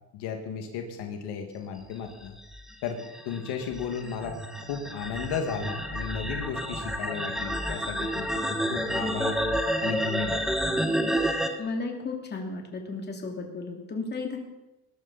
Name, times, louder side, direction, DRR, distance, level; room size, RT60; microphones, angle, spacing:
voice 1, 0.1-2.4 2.8-3.0 3.3-4.4 4.7-9.4 9.8-10.5, left 6 dB, 75° left, 4 dB, 2.1 m, -34 dB
sound 1, 2.2-11.5, equal, ahead, 1.3 m, -30 dB
voice 2, 11.6-14.4, left 3 dB, 25° left, 1 dB, 2.8 m, -34 dB
20.5 x 11.5 x 4.2 m, 1.0 s
cardioid pair, 130°, 40 cm